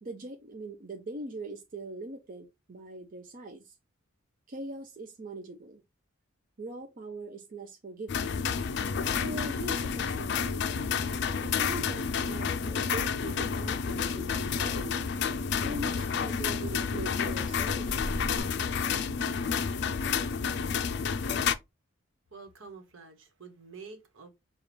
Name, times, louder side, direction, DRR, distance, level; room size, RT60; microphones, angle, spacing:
voice 1, 0.0-3.8 4.5-5.8 6.6-8.4 9.1-10.7 11.4-15.1 15.6-18.1, right 2 dB, 40° right, 0.5 m, -42 dB
sound 1, 8.1-21.5, left 6 dB, 55° left, 0.4 m, -30 dB
sound 2, 10.3-11.8 12.0-12.4 12.7-12.9 13.3-18.4, equal, 5° right, 0.8 m, -46 dB
voice 2, 22.3-24.3, right 4 dB, 65° right, 1.2 m, -48 dB
6.5 x 2.3 x 3.3 m
head